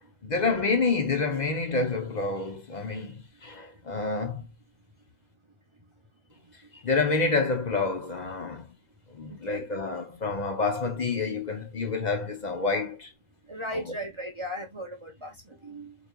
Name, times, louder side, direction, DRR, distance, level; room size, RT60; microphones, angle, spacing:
voice 1, 0.2-4.5 6.7-8.7 9.1-13.1 13.7-14.0, left 4 dB, 40° left, 0.7 m, -28 dB
voice 2, 9.3-9.7 13.5-16.0, equal, 35° right, 0.5 m, -37 dB
4.1 x 3.2 x 2.3 m
omnidirectional pair, 1.6 m